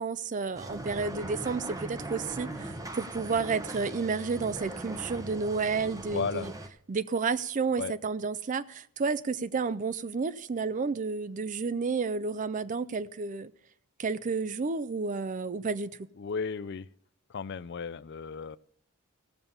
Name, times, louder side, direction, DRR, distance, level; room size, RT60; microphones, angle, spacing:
voice 1, 0.0-6.5 6.9-13.5 14.0-15.9, right 4 dB, 35° right, 0.4 m, -31 dB
sound 1, 0.5-6.7, right 2 dB, 15° right, 0.8 m, -40 dB
voice 2, 6.1-6.5 7.8-7.9 16.2-16.9 17.3-18.6, left 5 dB, 50° left, 0.4 m, -34 dB
16.0 x 7.2 x 5.5 m
head